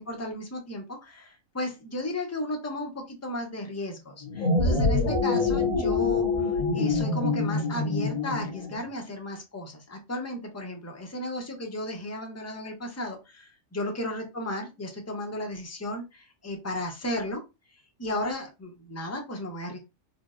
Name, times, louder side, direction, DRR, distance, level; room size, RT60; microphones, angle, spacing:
voice 1, 0.0-17.4 18.0-19.8, left 1 dB, 20° left, 2 dB, 0.5 m, -34 dB
sound 1, 4.2-8.8, left 3 dB, 85° left, 1.7 m, -25 dB
4.3 x 2.1 x 2.4 m, 0.26 s
omnidirectional pair, 1.4 m